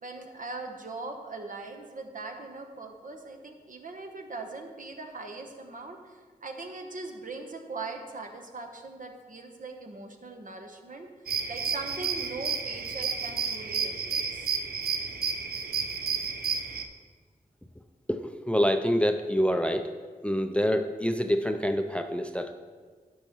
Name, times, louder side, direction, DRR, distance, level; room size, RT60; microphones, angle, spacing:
voice 1, 0.0-11.1 11.5-14.5, right 3 dB, 60° right, 3 dB, 1.0 m, -40 dB
sound 1, 11.3-16.8, right 5 dB, 80° right, 0.5 m, -31 dB
voice 2, 18.1-19.9 20.2-22.5, equal, 5° left, 7 dB, 0.5 m, -26 dB
10.5 x 5.6 x 3.1 m, 1.5 s
cardioid pair, 45°, 16 cm